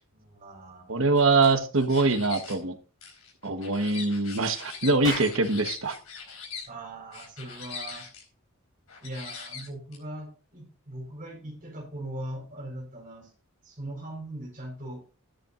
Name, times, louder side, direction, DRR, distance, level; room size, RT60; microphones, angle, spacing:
voice 1, 0.1-0.9 6.7-8.0 9.0-13.3 13.6-15.0, right 1 dB, 35° right, 1 dB, 4.6 m, -40 dB
voice 2, 0.9-2.7 3.4-6.0, right 3 dB, 65° right, 8 dB, 1.2 m, -23 dB
sound 1, 1.2-2.6 3.0-6.7 7.1-8.2 8.9-10.0, left 6 dB, 75° left, 4.5 m, -41 dB
Clapping, 5.0-9.7, left 1 dB, 20° left, 4.8 m, -42 dB
13.5 x 10.0 x 2.5 m, 0.35 s
head